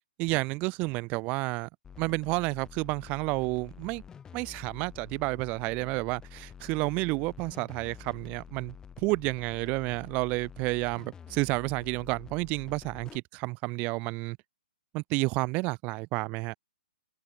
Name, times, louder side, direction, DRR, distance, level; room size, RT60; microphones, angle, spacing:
voice 1, 0.2-1.7 2.0-4.0 4.3-14.4 14.9-16.6, right 25 dB, 30° right, 0.9 m, -30 dB
sound 1, 1.8-13.2, left 7 dB, 15° left, 2.0 m, -49 dB
open air
hypercardioid pair, 140°, 5 cm